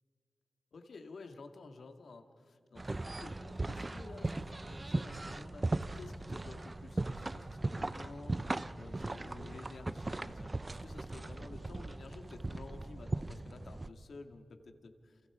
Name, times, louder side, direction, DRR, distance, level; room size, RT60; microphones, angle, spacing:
voice 1, 0.7-8.4 8.8-15.2, left 3 dB, 70° left, 6 dB, 1.9 m, -52 dB
sound 1, 2.8-13.9, right 2 dB, 25° right, 0.6 m, -38 dB
29.0 x 28.5 x 5.0 m, 2.4 s
wide cardioid pair, 145°, 0 cm